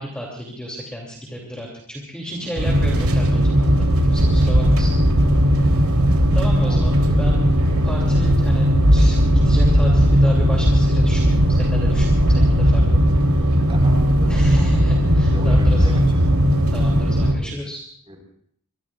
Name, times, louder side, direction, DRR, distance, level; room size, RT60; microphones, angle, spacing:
voice 1, 0.0-5.0 6.3-7.5 7.8-13.0 14.3-16.0 16.7-17.8, equal, 5° left, -3 dB, 2.9 m, -32 dB
sound 1, 2.6-17.3, equal, 85° right, 3.4 m, -17 dB
voice 2, 6.6-7.6 13.7-14.4 15.2-16.2 18.1-18.2, equal, 25° right, 0 dB, 4.9 m, -37 dB
24.5 x 23.0 x 2.5 m, 0.66 s
head